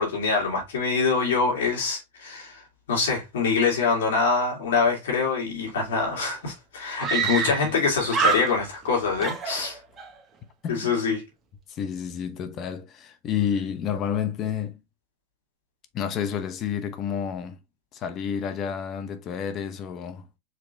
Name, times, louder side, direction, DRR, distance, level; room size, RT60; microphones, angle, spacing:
voice 1, 0.0-2.6 2.9-9.8 10.7-11.2, left 4 dB, 85° left, 2.4 m, -24 dB
Screaming, 5.9-6.0 6.2-6.3 7.0-7.8 8.1-8.9 9.2-10.1, right 6 dB, 30° right, 1.1 m, -27 dB
voice 2, 7.0-7.3 7.6-7.7 10.6-11.0 11.7-14.8 15.9-17.6 17.9-20.3, left 8 dB, 40° left, 0.9 m, -30 dB
5.0 x 2.9 x 3.2 m
hypercardioid pair, 120°, 0 cm